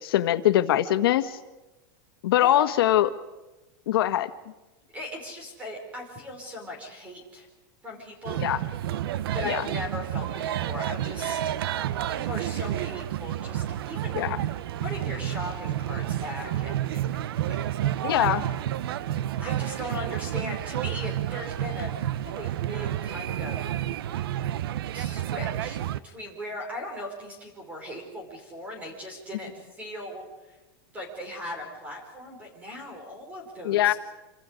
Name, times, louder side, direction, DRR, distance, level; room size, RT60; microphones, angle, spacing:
voice 1, 0.0-1.4 2.2-3.1 3.9-4.3 8.4-8.6 9.4-9.6 14.1-14.4 18.0-18.4 33.6-33.9, left 13 dB, 80° left, 9 dB, 1.5 m, -22 dB
voice 2, 4.9-7.5 7.8-8.4 9.3-11.4 12.1-14.4 14.8-17.0 17.5-17.6 17.8-18.3 19.4-21.9 22.2-23.6 24.9-25.8 26.0-30.2 30.9-33.9, left 1 dB, 10° right, 2 dB, 4.9 m, -38 dB
sound 1, 8.2-26.0, right 12 dB, 90° right, 0.8 m, -30 dB
27.5 x 26.0 x 5.2 m, 1.1 s
supercardioid pair, 180°, 12 cm